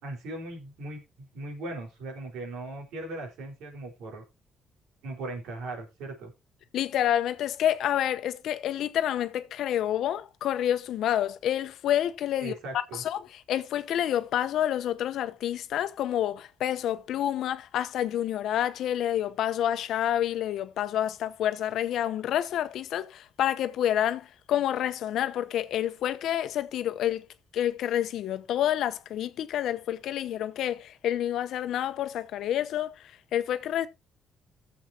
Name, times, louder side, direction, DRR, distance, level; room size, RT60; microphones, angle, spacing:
voice 1, 0.0-4.2 5.0-6.3 12.4-13.0, right 2 dB, 90° right, 4.2 m, -38 dB
voice 2, 6.7-12.5 12.9-27.2 27.5-32.9 33.3-33.9, left 11 dB, 80° left, 0.8 m, -28 dB
17.5 x 7.1 x 2.8 m
cardioid pair, 90°, 0 cm